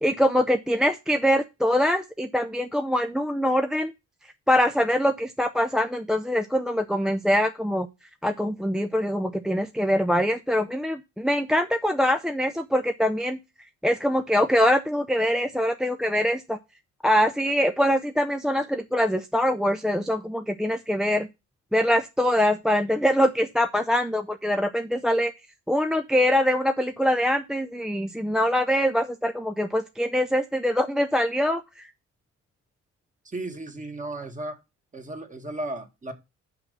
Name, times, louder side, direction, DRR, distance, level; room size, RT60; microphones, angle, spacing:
voice 1, 0.0-3.9 4.5-7.9 8.2-13.4 13.8-16.6 17.0-21.3 21.7-25.3 25.7-31.9, equal, ahead, 6 dB, 0.5 m, -23 dB
voice 2, 33.2-34.6 34.9-36.1, right 2 dB, 25° right, 5 dB, 1.8 m, -35 dB
5.8 x 5.3 x 6.7 m, 0.25 s
cardioid pair, 90°, 30 cm